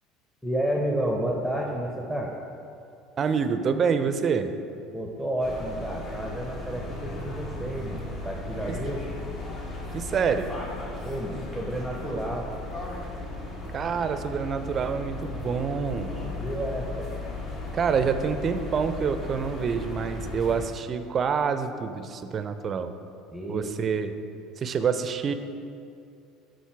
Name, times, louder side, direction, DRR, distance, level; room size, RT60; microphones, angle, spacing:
voice 1, 0.4-2.3 4.9-9.0 11.0-12.5 16.2-17.2 23.3-23.6, right 1 dB, ahead, 0 dB, 0.8 m, -31 dB
voice 2, 3.2-4.5 9.9-10.5 13.7-16.1 17.7-22.9 23.5-24.1 24.6-25.3, right 6 dB, 40° right, 10 dB, 0.5 m, -27 dB
sound 1, 5.4-20.7, left 2 dB, 45° left, 1.4 m, -36 dB
7.1 x 4.5 x 4.6 m, 2.6 s
supercardioid pair, 90°, 0 cm